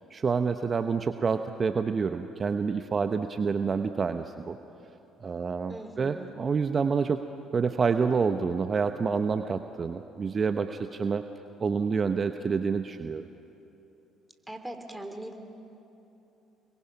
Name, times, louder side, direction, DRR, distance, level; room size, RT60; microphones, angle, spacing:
voice 1, 0.1-4.6 5.2-7.2 7.5-11.2 11.6-13.3, right 5 dB, 40° right, 8 dB, 0.8 m, -28 dB
voice 2, 5.7-6.3 14.5-15.4, right 1 dB, 10° right, 5 dB, 2.9 m, -40 dB
28.0 x 22.0 x 5.9 m, 2.9 s
hypercardioid pair, 60°, 0 cm